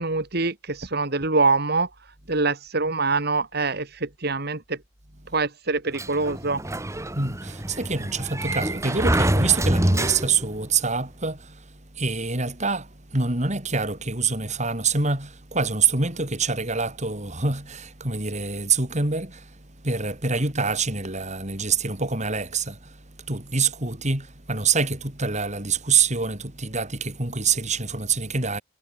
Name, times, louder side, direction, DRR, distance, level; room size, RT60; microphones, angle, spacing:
voice 1, 0.0-1.9 2.3-4.8 5.3-6.6, right 3 dB, 60° right, 2.4 m, -24 dB
Sliding door, 5.9-10.6, right 1 dB, 15° right, 1.7 m, -26 dB
voice 2, 7.0-28.6, right 4 dB, 40° right, 5.9 m, -26 dB
head